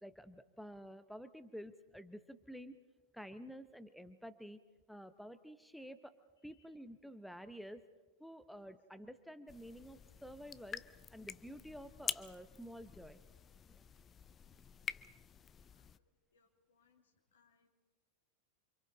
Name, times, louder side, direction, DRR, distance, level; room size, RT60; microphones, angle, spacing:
voice 1, 0.0-2.8 3.1-4.6 4.9-6.2 6.4-7.9 8.2-13.2 13.7-13.8, equal, ahead, 11 dB, 0.9 m, -51 dB
sound 1, 9.5-16.0, left 7 dB, 25° left, 0.6 m, -47 dB
voice 2, 15.6-16.0 16.3-17.7, left 5 dB, 70° left, 2 dB, 3.0 m, -75 dB
28.5 x 26.0 x 4.0 m, 1.3 s
figure-of-eight pair, 90°, 0 cm